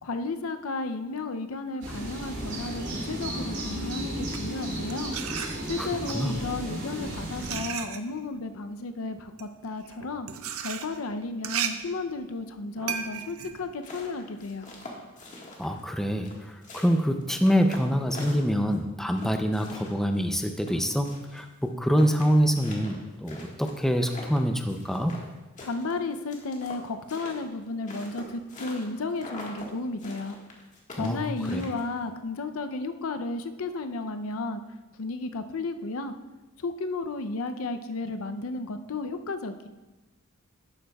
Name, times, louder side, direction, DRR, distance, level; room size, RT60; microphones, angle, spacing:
voice 1, 0.0-5.2 5.7-10.3 10.6-14.7 25.6-30.4 30.9-34.6 35.0-36.1 36.6-39.7, left 3 dB, 85° left, 8 dB, 0.6 m, -33 dB
sound 1, 1.8-7.6, right 1 dB, 55° right, 2.7 m, -34 dB
sound 2, 4.1-6.0 6.8-14.7, right 8 dB, 90° right, 0.6 m, -36 dB
sound 3, 13.6-15.9 16.2-18.8 19.1-21.4 21.7-21.8 21.9-25.3 25.6-28.9 29.2-29.7 30.0-32.0, left 2 dB, 35° left, 1.6 m, -43 dB
voice 2, 15.6-16.4 16.7-25.1 31.0-31.6, equal, ahead, 5 dB, 0.5 m, -25 dB
11.5 x 8.6 x 2.3 m, 1.1 s
head